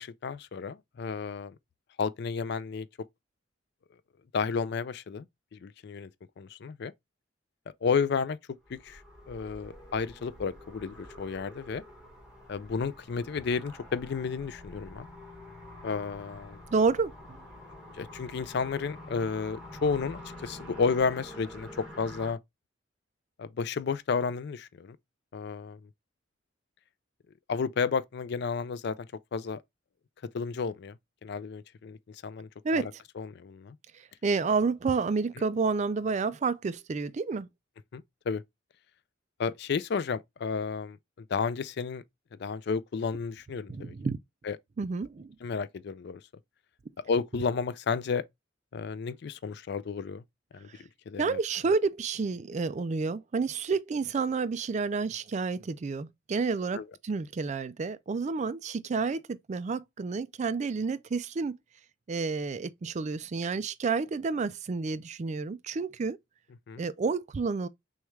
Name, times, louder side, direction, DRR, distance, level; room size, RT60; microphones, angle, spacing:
voice 1, 0.0-1.5 2.0-2.9 4.3-5.3 5.5-6.1 6.4-6.9 7.8-8.4 8.7-9.0 9.3-11.8 12.5-15.1 15.8-16.6 18.0-22.4 23.4-25.0 25.3-25.8 27.5-29.6 30.3-30.9 31.2-32.5 32.7-32.9 33.2-33.8 37.9-38.4 39.4-41.0 41.3-42.0 42.4-43.9 44.4-44.6 45.4-46.2 47.1-48.2 48.7-50.2 50.5-50.7 51.1-51.4 56.7-56.8 66.7-66.8, left 5 dB, 60° left, 0.4 m, -32 dB
sound 1, 8.6-22.3, left 1 dB, 5° right, 1.4 m, -47 dB
voice 2, 16.7-17.4 32.6-32.9 34.2-37.5 43.7-44.2 44.8-45.3 51.2-61.6 62.1-66.2 66.8-67.7, right 4 dB, 35° right, 0.3 m, -30 dB
6.3 x 2.4 x 3.1 m
head